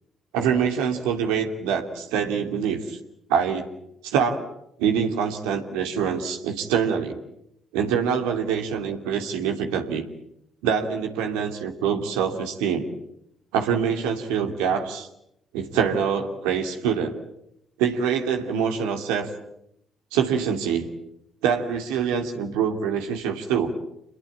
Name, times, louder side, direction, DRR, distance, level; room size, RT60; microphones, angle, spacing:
voice 1, 0.3-3.0 3.3-3.7 4.0-4.4 4.8-7.2 7.7-10.0 10.6-12.9 13.5-15.1 15.5-17.2 17.8-19.3 20.1-20.9 21.4-23.7, right 7 dB, 75° right, 4 dB, 2.7 m, -25 dB
28.0 x 21.5 x 8.6 m, 0.78 s
hypercardioid pair, 50°, 0 cm